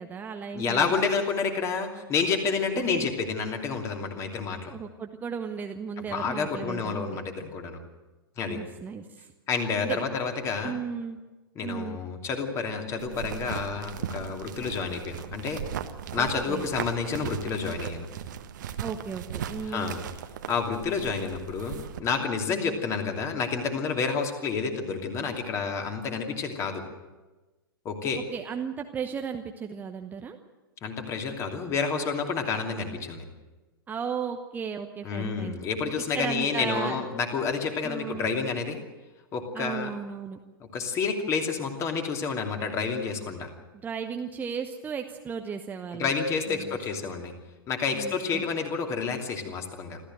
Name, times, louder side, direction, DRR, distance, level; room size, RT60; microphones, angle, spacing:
voice 1, 0.0-1.1 2.8-3.1 4.7-7.1 8.5-9.3 9.8-10.1 10.6-11.2 11.6-12.0 16.1-16.7 18.8-20.0 28.3-30.4 33.9-35.6 36.1-37.0 37.8-38.4 39.5-40.4 43.8-46.1 46.5-46.8 47.9-48.4, right 6 dB, 15° right, 5 dB, 1.0 m, -35 dB
voice 2, 0.5-4.7 6.0-7.8 8.4-8.6 9.5-10.7 11.5-15.6 16.1-18.1 19.6-20.0 20.5-26.8 27.8-28.2 30.8-33.2 35.0-38.8 39.3-39.9 40.6-43.5 45.9-47.3 47.7-50.0, left 5 dB, 25° left, 4 dB, 2.8 m, -29 dB
sound 1, 13.0-22.0, right 9 dB, 50° right, 1.4 m, -38 dB
26.5 x 14.5 x 7.7 m, 1.2 s
figure-of-eight pair, 105°, 12 cm